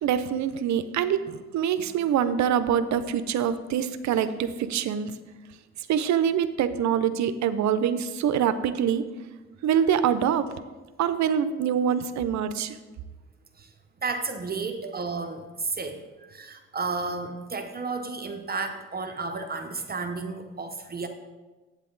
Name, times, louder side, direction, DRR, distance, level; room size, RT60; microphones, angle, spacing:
voice 1, 0.0-5.2 5.9-9.1 9.6-10.5 11.0-12.8, right 8 dB, 70° right, 11 dB, 0.6 m, -25 dB
voice 2, 14.0-21.1, right 4 dB, 30° right, 5 dB, 0.7 m, -32 dB
8.4 x 8.2 x 3.8 m, 1.2 s
cardioid pair, 90°, 30 cm